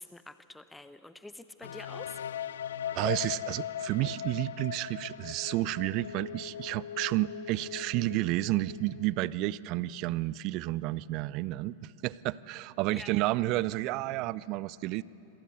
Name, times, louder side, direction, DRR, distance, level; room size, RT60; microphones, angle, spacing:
voice 1, 0.0-2.2 12.9-13.1, left 2 dB, 5° left, 12 dB, 0.9 m, -47 dB
sound 1, 1.6-9.4, left 9 dB, 65° left, 0.6 m, -39 dB
voice 2, 2.9-15.0, right 17 dB, 40° right, 21 dB, 0.5 m, -31 dB
27.0 x 26.5 x 7.9 m, 2.9 s
figure-of-eight pair, 90°, 0 cm